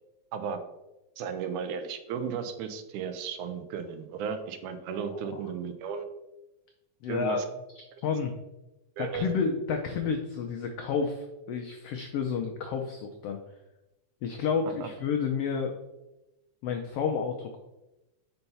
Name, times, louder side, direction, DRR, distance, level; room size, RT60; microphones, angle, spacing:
voice 1, 0.3-0.6 1.2-6.1 7.1-7.4 9.0-9.3 14.8-14.9, right 6 dB, 80° right, 8 dB, 2.1 m, -34 dB
voice 2, 4.9-5.4 7.0-7.4 8.0-8.3 9.0-13.4 14.2-15.7 16.6-17.6, left 6 dB, 85° left, 4 dB, 1.3 m, -30 dB
5.4 x 4.5 x 5.4 m, 0.98 s
omnidirectional pair, 3.4 m